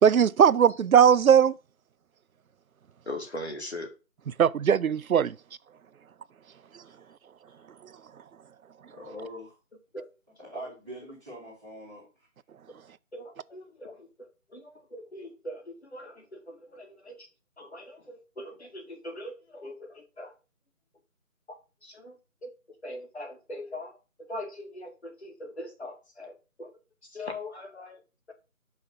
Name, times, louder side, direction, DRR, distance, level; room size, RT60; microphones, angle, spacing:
voice 1, 0.0-1.5 4.4-5.4 6.7-6.8, right 8 dB, 75° right, 0.5 m, -19 dB
voice 2, 3.0-3.9 9.9-10.0 13.1-14.1 14.5-17.3 17.6-20.3 21.8-22.5 22.8-26.7 27.1-28.0 28.3-28.4, left 1 dB, 50° left, 1.7 m, -41 dB
voice 3, 8.8-9.6 10.4-12.3, equal, 5° right, 1.8 m, -43 dB
5.6 x 3.4 x 5.6 m
figure-of-eight pair, 175°, 42 cm